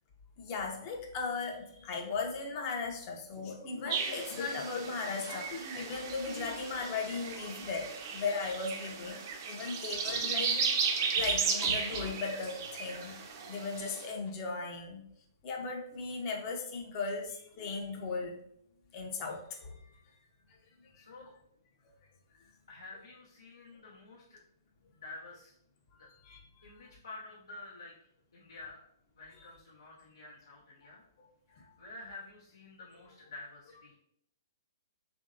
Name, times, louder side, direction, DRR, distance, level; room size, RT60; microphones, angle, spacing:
voice 1, 0.4-7.9 8.1-9.2 9.5-10.8 11.1-13.1 13.5-15.0 15.4-18.4 18.9-19.8 25.9-26.7 31.2-31.3, left 4 dB, 35° left, 1 dB, 0.6 m, -37 dB
sound 1, 3.9-14.0, right 5 dB, 50° right, 0.5 m, -35 dB
voice 2, 21.0-21.4 22.7-24.4 24.9-25.5 26.0-26.1 26.6-28.0 28.3-28.8 29.2-31.0 31.5-33.9, left 2 dB, 85° left, -6 dB, 0.7 m, -49 dB
3.0 x 2.6 x 2.6 m, 0.73 s
hypercardioid pair, 130°, 2 cm